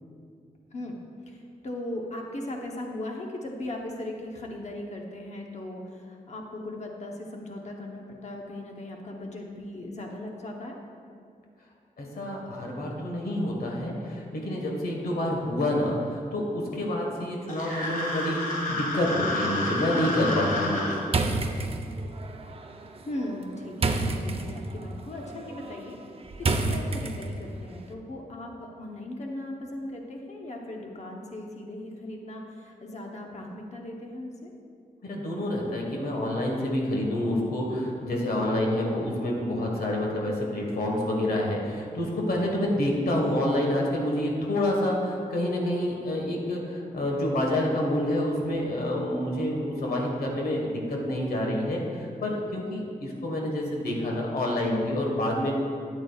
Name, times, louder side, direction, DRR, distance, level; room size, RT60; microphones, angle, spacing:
voice 1, 1.3-10.8 23.0-26.0 26.4-34.5, left 1 dB, 50° left, 1 dB, 0.9 m, -38 dB
voice 2, 12.0-20.9 35.0-55.5, left 1 dB, 85° left, -1 dB, 1.4 m, -28 dB
sound 1, 17.5-21.0, left 2 dB, 65° left, 1.5 m, -30 dB
sound 2, 21.1-27.6, right 3 dB, 40° right, 0.6 m, -30 dB
12.5 x 8.8 x 2.4 m, 2.3 s
wide cardioid pair, 150°, 15 cm